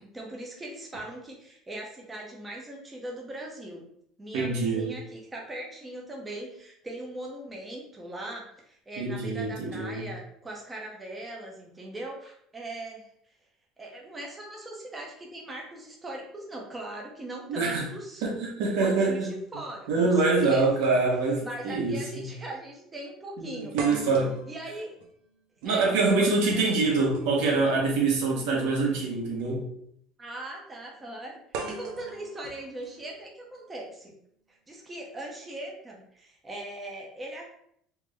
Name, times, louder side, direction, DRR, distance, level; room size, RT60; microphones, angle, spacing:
voice 1, 0.1-3.9 4.2-13.1 13.8-18.2 18.8-20.9 21.4-23.7 24.5-24.9 25.6-26.7 30.2-31.4 31.6-34.1 34.5-37.4, right 1 dB, 10° right, -2 dB, 0.5 m, -40 dB
voice 2, 4.3-4.9 9.0-10.1 17.5-17.9 18.2-19.3 19.9-22.3 23.4-24.4 25.6-29.7, right 3 dB, 90° right, -1 dB, 1.1 m, -25 dB
sound 1, 21.8-22.0 22.3-22.4 23.8-27.8 29.0-29.1 31.5-33.6, right 3 dB, 65° right, 0.6 m, -41 dB
3.4 x 2.5 x 3.2 m, 0.69 s
cardioid pair, 175°, 0 cm